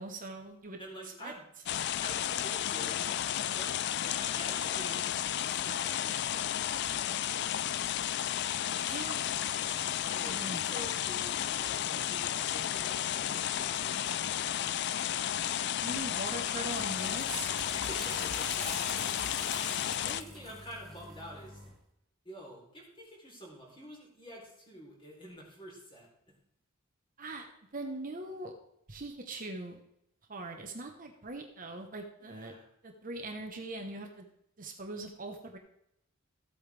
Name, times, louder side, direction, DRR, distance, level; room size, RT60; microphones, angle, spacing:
voice 1, 0.0-0.8 1.2-1.3 8.8-9.2 10.2-10.6 15.4-17.5 27.2-28.5 28.9-29.8 30.3-32.6 32.8-34.3 34.6-35.6, right 2 dB, 40° right, 3 dB, 1.1 m, -41 dB
voice 2, 0.8-1.5 2.0-3.8 4.0-8.2 10.0-14.4 17.7-19.0 19.8-21.6 22.2-26.4 32.2-32.7, equal, 25° left, -2 dB, 3.7 m, -49 dB
sound 1, 1.7-20.2, left 11 dB, 55° left, 0.3 m, -33 dB
sound 2, 16.3-21.7, right 1 dB, ahead, 2.3 m, -45 dB
14.5 x 8.5 x 3.4 m, 0.77 s
head